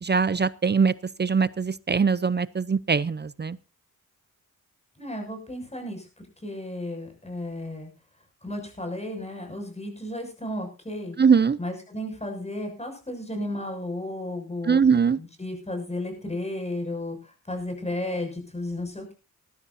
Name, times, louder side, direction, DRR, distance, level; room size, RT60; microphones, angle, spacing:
voice 1, 0.0-3.6 11.2-11.6 14.6-15.2, right 5 dB, 30° right, 18 dB, 0.6 m, -22 dB
voice 2, 5.0-6.1 6.4-7.9 8.4-11.2 11.6-14.8 15.2-19.1, left 1 dB, 20° left, 4 dB, 6.7 m, -33 dB
19.5 x 13.0 x 2.7 m, 0.31 s
cardioid pair, 85°, 33 cm